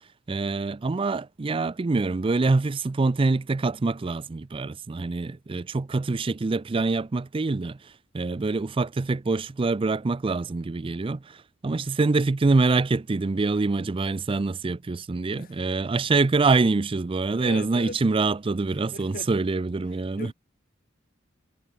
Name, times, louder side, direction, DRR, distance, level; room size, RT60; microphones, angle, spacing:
voice 1, 0.3-20.3, right 3 dB, 25° right, 0.4 m, -25 dB
voice 2, 17.4-18.0 18.7-19.3 20.2-20.3, left 2 dB, 45° left, 3.4 m, -38 dB
head